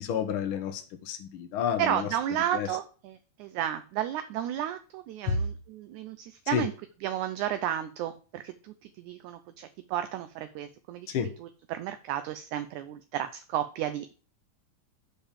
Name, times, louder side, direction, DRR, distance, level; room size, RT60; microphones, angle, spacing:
voice 1, 0.0-2.1 2.5-2.7 5.3-5.4 6.5-6.7 11.1-11.3, left 8 dB, 85° left, 7 dB, 1.1 m, -30 dB
voice 2, 1.8-6.7 7.0-8.5 9.0-11.1 11.7-14.1, right 11 dB, 80° right, 9 dB, 1.8 m, -32 dB
6.9 x 5.3 x 7.2 m, 0.38 s
omnidirectional pair, 3.8 m